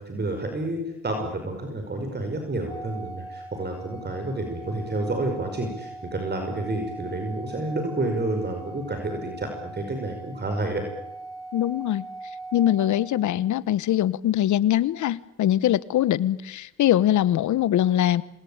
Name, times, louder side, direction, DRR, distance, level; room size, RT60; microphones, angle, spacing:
voice 1, 0.0-10.8, right 2 dB, 35° right, 5 dB, 5.5 m, -29 dB
Organ, 2.7-13.5, right 2 dB, 10° left, 5.1 m, -41 dB
voice 2, 11.5-12.0 12.5-18.2, left 12 dB, 75° left, 18 dB, 1.2 m, -22 dB
27.5 x 21.5 x 8.9 m, 0.89 s
cardioid pair, 90°, 30 cm